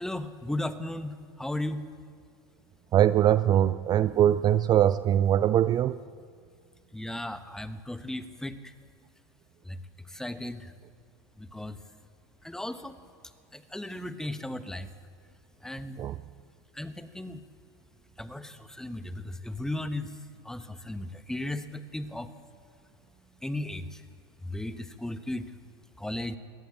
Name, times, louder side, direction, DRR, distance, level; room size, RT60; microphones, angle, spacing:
voice 1, 0.0-1.8 6.9-8.7 9.6-9.8 10.1-10.7 11.4-11.8 12.4-13.0 13.5-14.9 15.6-16.0 16.7-17.4 18.2-20.2 20.4-22.3 23.4-24.0 24.4-25.5 26.0-26.4, left 1 dB, 5° left, 11 dB, 1.2 m, -36 dB
voice 2, 2.9-6.0 16.0-16.1, right 11 dB, 30° right, 16 dB, 0.5 m, -22 dB
21.5 x 17.5 x 7.2 m, 2.1 s
hypercardioid pair, 90°, 13 cm